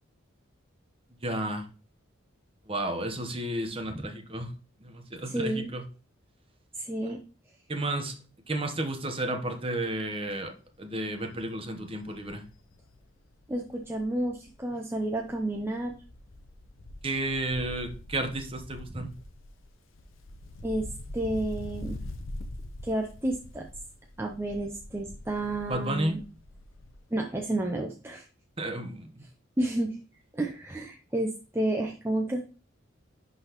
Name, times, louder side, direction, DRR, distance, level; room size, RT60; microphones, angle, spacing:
voice 1, 1.2-1.7 2.6-4.5 4.8-5.8 7.7-12.4 17.0-19.1 25.7-26.2 28.6-29.2, right 1 dB, 25° right, 1.0 m, -32 dB
voice 2, 5.3-5.7 6.7-7.2 13.5-15.9 18.9-19.1 20.6-20.9 21.1-22.0 22.8-23.7 24.2-26.2 27.1-28.3 29.6-30.0 30.3-32.4, right 1 dB, 10° right, 0.5 m, -31 dB
Wind, 10.1-10.4 10.7-10.8 11.1-14.7 15.0-27.1 27.4-27.5, left 1 dB, 75° left, 0.7 m, -44 dB
10.5 x 4.0 x 3.0 m
head